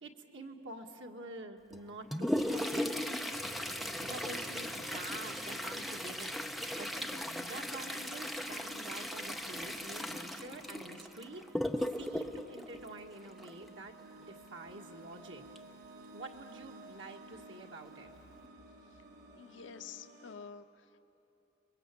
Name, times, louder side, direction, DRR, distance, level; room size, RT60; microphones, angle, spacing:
voice 1, 0.0-3.0 4.0-11.4 12.0-15.4 16.1-18.1, right 2 dB, 85° right, 2 dB, 1.8 m, -48 dB
Toilet flush, 1.7-13.7 15.6-15.7 16.0-16.1 16.9-17.0 17.6-17.9 18.3-18.5, left 1 dB, ahead, 0.7 m, -37 dB
sound 1, 3.3-20.3, right 2 dB, 65° right, 3.7 m, -55 dB
voice 2, 19.4-21.0, left 6 dB, 80° left, 10 dB, 0.6 m, -49 dB
30.0 x 22.0 x 8.4 m, 2.9 s
head